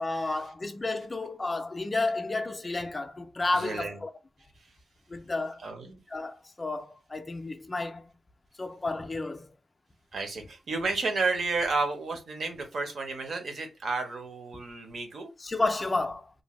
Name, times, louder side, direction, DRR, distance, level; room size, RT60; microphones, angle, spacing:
voice 1, 0.0-4.1 5.1-5.6 6.1-8.1 8.6-9.5 15.4-16.3, left 2 dB, 20° left, 0.3 m, -31 dB
voice 2, 3.5-4.0 5.6-6.0 10.1-15.3, right 3 dB, 50° right, 0.7 m, -31 dB
2.6 x 2.1 x 3.0 m
wide cardioid pair, 180°, 0 cm